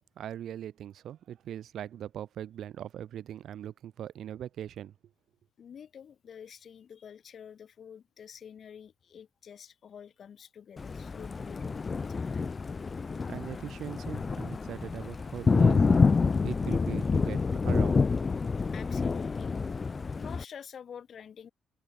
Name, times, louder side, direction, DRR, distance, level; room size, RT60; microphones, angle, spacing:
voice 1, 0.2-4.9 13.0-16.0 16.4-18.2, right 10 dB, 65° right, 1.7 m, -40 dB
voice 2, 5.6-12.5 18.7-19.5 20.2-21.5, left 8 dB, 50° left, 6.0 m, -48 dB
Thunder, 10.8-20.4, left 4 dB, 35° left, 1.7 m, -28 dB
supercardioid pair, 65°, 0 cm